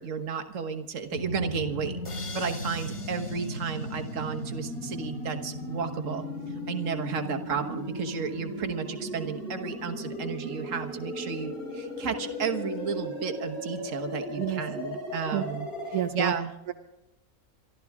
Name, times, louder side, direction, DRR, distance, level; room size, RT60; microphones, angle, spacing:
voice 1, 0.0-6.3 6.7-15.7 16.1-16.5, right 6 dB, 55° right, 6 dB, 1.6 m, -33 dB
sound 1, 1.1-16.0, left 1 dB, 70° left, 4.4 m, -36 dB
sound 2, 2.0-4.9, left 3 dB, 30° left, 0.6 m, -45 dB
voice 2, 15.9-16.3, right 11 dB, 75° right, 6 dB, 1.4 m, -28 dB
26.0 x 13.0 x 3.6 m, 0.90 s
omnidirectional pair, 1.6 m